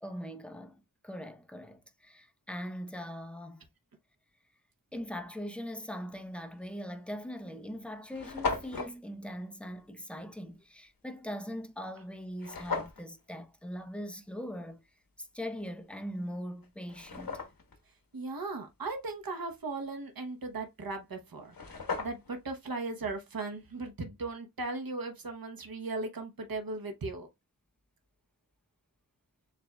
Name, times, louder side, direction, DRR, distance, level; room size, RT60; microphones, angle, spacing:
voice 1, 0.0-3.7 4.9-14.8 15.2-17.4, equal, 5° left, 0.6 m, -41 dB
sound 1, 6.6-6.8 7.5-7.6 7.8-7.9 8.1-8.9 12.4-13.0 16.0-16.1 16.6-17.8 21.1-21.2 21.4-22.4, left 4 dB, 75° left, 1.0 m, -36 dB
voice 2, 18.1-27.3, right 3 dB, 75° right, 1.0 m, -37 dB
7.3 x 2.6 x 2.2 m
wide cardioid pair, 60°, 36 cm